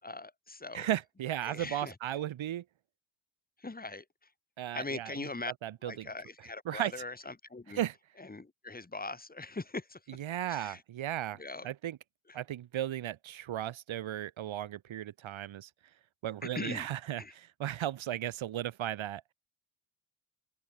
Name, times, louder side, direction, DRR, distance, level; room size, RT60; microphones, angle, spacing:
voice 1, 0.0-0.9 1.4-1.9 3.6-4.1 4.7-5.5 5.8-7.8 8.2-10.0 10.5-10.8 11.4-11.7 12.3-12.4 16.5-16.9 17.2-17.3, left 3 dB, 20° left, 3.4 m, -41 dB
voice 2, 0.7-2.6 4.6-5.2 5.6-6.1 6.6-6.9 7.7-7.9 10.1-12.0 12.3-15.7 16.2-19.2, right 12 dB, 70° right, 3.0 m, -35 dB
open air
cardioid pair, 100°, 48 cm